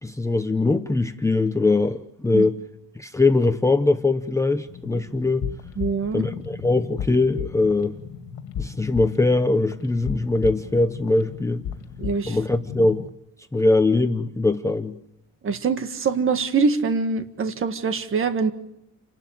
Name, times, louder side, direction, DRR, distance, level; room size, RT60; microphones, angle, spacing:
voice 1, 0.0-2.6 3.0-5.4 6.1-7.9 8.6-11.6 12.3-13.1 13.5-15.0, left 2 dB, 10° left, 7 dB, 0.7 m, -21 dB
sound 1, 4.7-13.1, left 8 dB, 85° left, 2.0 m, -35 dB
voice 2, 5.8-6.3 12.0-12.4 15.4-18.5, right 5 dB, 40° right, 8 dB, 1.7 m, -24 dB
30.0 x 12.0 x 9.2 m, 0.83 s
cardioid pair, 160°, 34 cm